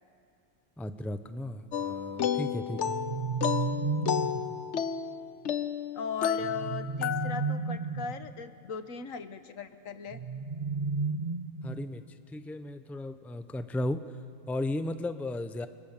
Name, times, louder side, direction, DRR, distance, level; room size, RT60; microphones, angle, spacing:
voice 1, 0.8-2.8 11.6-12.0 12.3-14.0 14.5-15.7, left 1 dB, ahead, 10 dB, 0.6 m, -35 dB
sound 1, 1.7-7.6, left 8 dB, 65° left, 1.2 m, -32 dB
sound 2, 2.7-4.5 6.4-8.3 10.1-12.0, right 4 dB, 35° right, 0.8 m, -33 dB
voice 2, 5.9-10.2, left 6 dB, 80° left, 10 dB, 1.6 m, -38 dB
30.0 x 25.0 x 7.3 m, 2.6 s
omnidirectional pair, 1.4 m